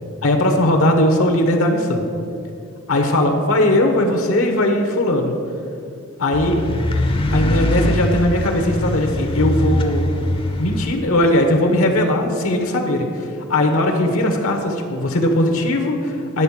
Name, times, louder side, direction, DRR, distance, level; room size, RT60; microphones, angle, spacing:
voice 1, 0.2-2.0 2.9-5.3 6.2-6.6 7.3-10.0 10.6-16.4, left 1 dB, 65° left, 4 dB, 0.9 m, -18 dB
sound 1, 6.3-10.9, left 1 dB, 25° left, 0.6 m, -22 dB
9.8 x 4.0 x 7.2 m, 2.5 s
head